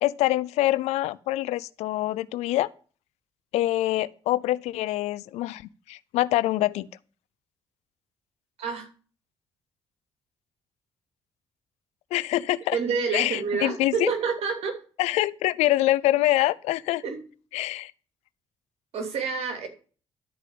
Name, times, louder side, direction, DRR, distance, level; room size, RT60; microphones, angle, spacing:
voice 1, 0.0-2.7 3.5-6.9 12.1-12.8 13.1-14.1 15.0-17.0 17.5-17.9, left 16 dB, 80° left, 0.5 m, -25 dB
voice 2, 12.7-14.8 17.0-17.2 18.9-19.7, right 5 dB, 65° right, 2.9 m, -28 dB
11.5 x 4.9 x 8.4 m
supercardioid pair, 60°, 11 cm